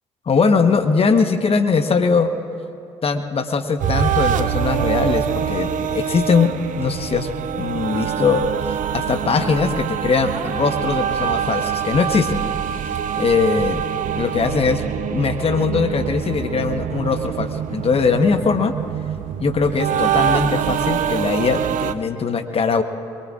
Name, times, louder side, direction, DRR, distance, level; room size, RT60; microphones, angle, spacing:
voice 1, 0.3-2.3 3.0-7.3 7.5-8.4 8.7-12.4 13.2-13.8 14.1-14.9 15.1-18.7 19.4-22.8, left 5 dB, 40° left, 8 dB, 1.1 m, -20 dB
sound 1, 3.8-21.9, right 9 dB, 55° right, 0.6 m, -24 dB
22.5 x 22.5 x 2.5 m, 2.6 s
hypercardioid pair, 45°, 16 cm